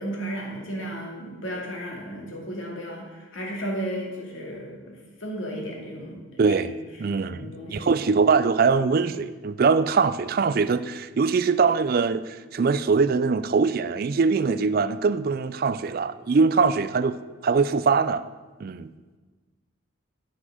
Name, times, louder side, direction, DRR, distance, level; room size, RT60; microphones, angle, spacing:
voice 1, 0.0-6.9 7.3-8.0, right 1 dB, 75° left, -1 dB, 2.3 m, -34 dB
voice 2, 6.4-6.7 7.0-17.2 17.4-18.2 18.6-18.9, right 5 dB, 45° right, 14 dB, 0.3 m, -22 dB
9.8 x 6.2 x 5.9 m, 1.3 s
head